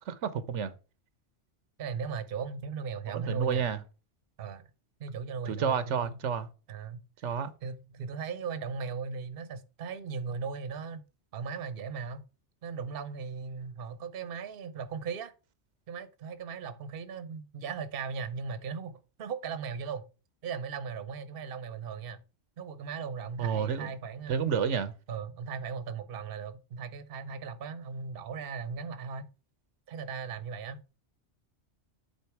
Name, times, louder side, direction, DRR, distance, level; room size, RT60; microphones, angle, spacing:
voice 1, 0.1-0.7 3.1-3.8 5.5-6.5 7.2-7.5 23.4-23.9 24.3-24.9, right 7 dB, 85° right, 1.1 m, -30 dB
voice 2, 1.8-3.7 4.4-4.6 5.0-6.2 6.7-7.4 7.6-11.0 11.3-12.2 12.6-15.3 15.9-20.0 20.4-22.2 22.6-24.5 25.1-29.3 29.9-30.8, right 5 dB, 55° right, 0.9 m, -38 dB
8.4 x 4.0 x 4.5 m
omnidirectional pair, 1.2 m